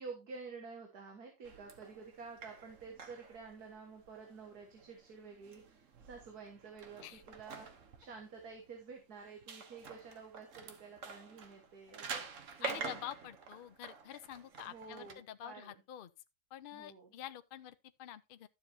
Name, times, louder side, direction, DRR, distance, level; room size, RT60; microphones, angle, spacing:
voice 1, 0.0-5.6 6.0-7.7 8.0-12.2 12.6-12.9 14.7-15.8 16.7-17.1, right 4 dB, 75° right, 2.2 m, -50 dB
sound 1, 1.4-15.1, right 5 dB, 55° right, 1.4 m, -48 dB
voice 2, 12.6-16.1 16.5-18.5, left 12 dB, 60° left, 0.5 m, -47 dB
12.0 x 7.4 x 2.8 m
omnidirectional pair, 1.7 m